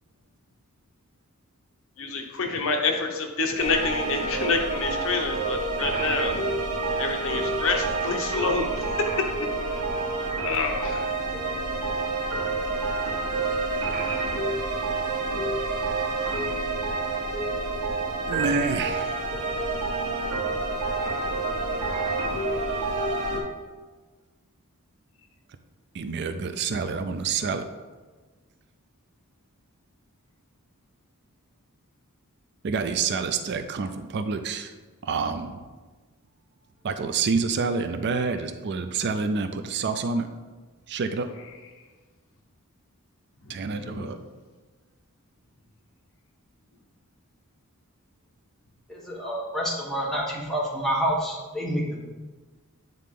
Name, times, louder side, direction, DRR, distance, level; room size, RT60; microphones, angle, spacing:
voice 1, 2.0-6.3 7.0-9.0 9.6-9.8 10.4-11.2 21.0-21.3 43.4-44.1, left 4 dB, 65° left, 3 dB, 0.8 m, -28 dB
sound 1, 3.6-23.4, right 3 dB, 75° right, 1.6 m, -28 dB
voice 2, 18.3-19.2 25.9-27.6 32.6-34.7 35.0-35.6 36.8-40.3 40.9-41.3 43.5-44.2, right 4 dB, 50° right, 9 dB, 0.4 m, -28 dB
voice 3, 48.9-52.1, equal, ahead, -5 dB, 1.3 m, -28 dB
9.1 x 3.8 x 3.7 m, 1.3 s
head